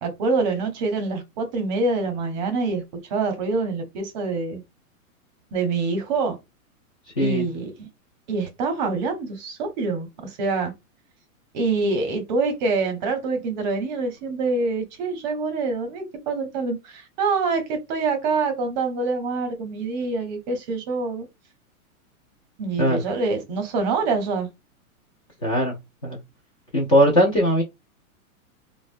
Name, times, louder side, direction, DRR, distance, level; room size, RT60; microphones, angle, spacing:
voice 1, 0.0-2.8 3.1-4.6 5.5-6.4 7.2-7.9 8.3-10.7 11.5-21.3 22.6-24.5, right 3 dB, 30° right, 0.7 m, -25 dB
voice 2, 25.4-25.7 26.0-26.2 26.7-27.6, equal, 25° left, 0.4 m, -19 dB
3.4 x 2.1 x 2.5 m
hypercardioid pair, 155°, 43 cm